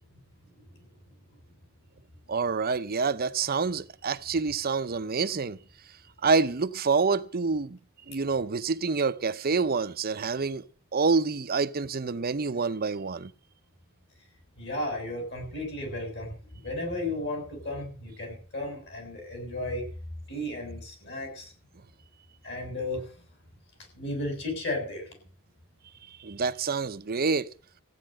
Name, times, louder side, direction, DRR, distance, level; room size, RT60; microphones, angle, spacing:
voice 1, 2.3-5.6 6.2-7.8 8.1-10.6 10.9-13.3 26.2-27.5, right 4 dB, 45° right, 0.7 m, -27 dB
voice 2, 14.6-19.8 20.3-21.5 22.4-23.1 23.9-25.1, left 1 dB, 55° left, 7.4 m, -34 dB
15.0 x 9.4 x 7.7 m
head